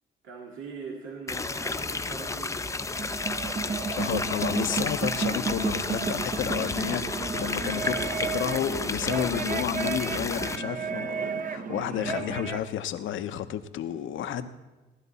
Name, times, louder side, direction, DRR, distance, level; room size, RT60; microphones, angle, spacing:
voice 1, 0.2-2.9 7.7-8.4, right 4 dB, 80° right, -2 dB, 2.1 m, -41 dB
sound 1, 1.3-10.6, left 3 dB, 15° left, 0.5 m, -32 dB
sound 2, 2.8-12.7, right 5 dB, 40° right, 0.9 m, -32 dB
voice 2, 4.0-14.5, left 10 dB, 75° left, 10 dB, 0.8 m, -31 dB
17.5 x 11.0 x 4.1 m, 1.2 s
cardioid pair, 90°, 20 cm